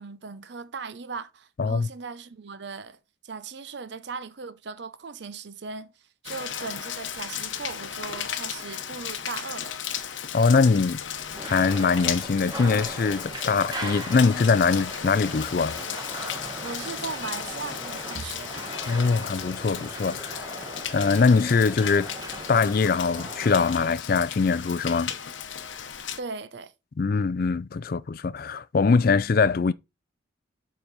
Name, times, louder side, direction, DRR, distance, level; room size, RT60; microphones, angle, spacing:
voice 1, 0.0-3.0 3.2-5.9 6.2-9.8 16.6-18.7 26.2-26.7, right 4 dB, 60° right, 0.6 m, -38 dB
voice 2, 1.6-1.9 10.3-11.0 11.5-15.8 18.9-20.5 20.9-22.1 22.5-25.1 27.0-29.7, left 4 dB, 45° left, 0.4 m, -22 dB
Rain, 6.2-26.2, left 9 dB, 70° left, 0.9 m, -35 dB
sound 1, 11.3-23.7, right 1 dB, 20° right, 1.5 m, -38 dB
7.2 x 5.0 x 4.0 m
head